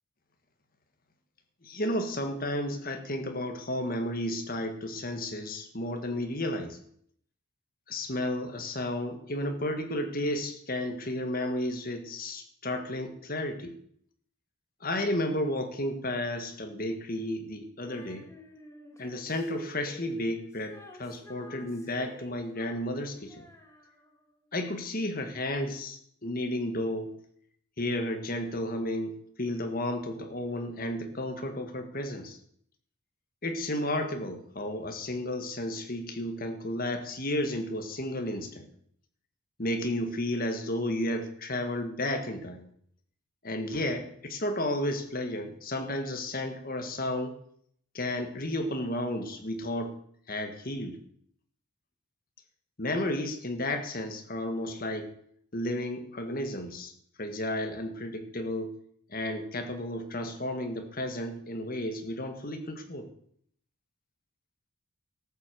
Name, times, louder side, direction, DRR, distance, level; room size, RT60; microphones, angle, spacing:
voice 1, 1.6-6.8 7.9-13.7 14.8-18.2 19.0-23.3 24.5-27.1 27.8-29.1 29.4-32.4 33.4-38.7 39.6-42.7 43.4-47.3 47.9-49.9 50.3-51.0 52.8-55.1 55.5-56.9 57.2-58.7 59.1-63.1, left 1 dB, 40° left, 6 dB, 1.6 m, -32 dB
Female singing, 17.8-24.3, left 1 dB, 15° left, 1.6 m, -51 dB
13.5 x 7.8 x 6.8 m, 0.65 s
head